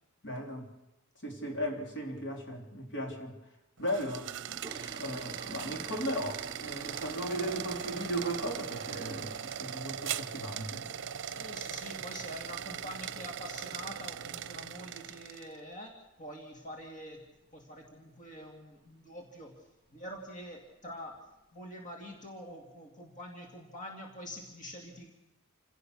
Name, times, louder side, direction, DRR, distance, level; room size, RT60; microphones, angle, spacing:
voice 1, 0.2-0.7 1.2-3.4 3.8-4.3 5.0-10.8, equal, 55° left, 3.2 m, -36 dB
sound 1, 3.8-15.6, right 8 dB, 60° right, 0.7 m, -40 dB
sound 2, 4.5-10.0 10.3-10.6 10.9-11.0 11.4-11.5 11.9-12.1 12.4-12.5 13.1-13.2 13.4-13.6 14.1-14.4 14.7-14.8 15.2-15.4 15.7-15.8 16.2-16.3 16.9-17.3 17.6-17.9 18.3-18.4 18.8-18.9 19.7-19.8 20.2-20.7 21.1-21.2, right 3 dB, 20° right, 3.9 m, -49 dB
voice 2, 11.3-19.5 19.9-21.2 21.5-25.1, equal, 35° left, 2.6 m, -45 dB
27.5 x 16.5 x 6.5 m
head